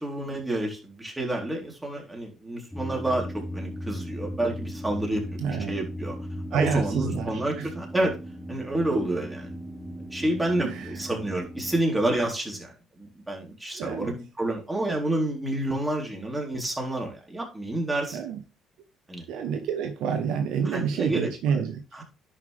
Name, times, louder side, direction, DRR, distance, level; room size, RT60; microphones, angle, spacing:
voice 1, 0.0-6.2 6.5-8.1 8.5-9.6 10.1-18.2 19.1-19.2 20.7-21.3 22.0-22.1, right 1 dB, 15° right, 0 dB, 3.9 m, -29 dB
sound 1, 2.7-11.8, equal, 5° left, 1.3 m, -37 dB
voice 2, 5.4-5.7 6.5-7.7 10.6-11.1 13.7-14.2 18.1-18.4 19.3-21.8, right 7 dB, 75° right, 6 dB, 1.2 m, -28 dB
10.5 x 5.7 x 3.5 m, 0.32 s
hypercardioid pair, 60°, 0 cm